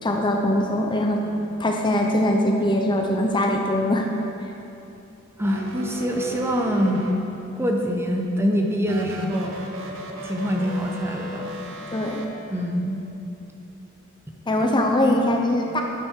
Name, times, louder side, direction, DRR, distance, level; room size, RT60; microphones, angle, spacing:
voice 1, 0.0-1.2 1.6-4.1 4.4-4.5 11.9-12.2 14.5-15.8, left 1 dB, 20° left, 2 dB, 0.7 m, -22 dB
voice 2, 5.4-7.1 7.6-9.6 10.2-11.5 12.5-13.0, equal, 10° right, 1 dB, 0.8 m, -24 dB
sound 1, 5.4-7.6 8.8-12.3, right 2 dB, 60° right, 1.1 m, -36 dB
12.0 x 8.4 x 4.5 m, 2.9 s
head